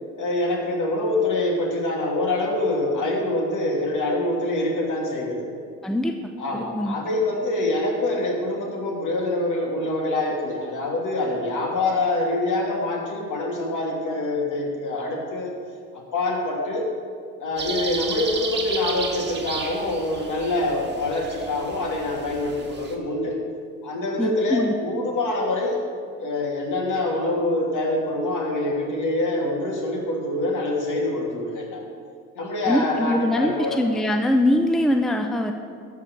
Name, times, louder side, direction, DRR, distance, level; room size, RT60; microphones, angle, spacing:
voice 1, 0.2-5.6 6.4-15.5 15.9-16.9 17.4-23.4 23.8-25.7 26.2-31.8 32.3-33.8, left 2 dB, 50° left, -1 dB, 2.7 m, -25 dB
voice 2, 5.8-7.0 24.2-24.7 32.7-35.5, left 1 dB, ahead, 5 dB, 0.7 m, -23 dB
sound 1, 17.6-23.0, right 4 dB, 30° right, 1.7 m, -33 dB
13.0 x 4.8 x 6.6 m, 2.2 s
hypercardioid pair, 65°, 38 cm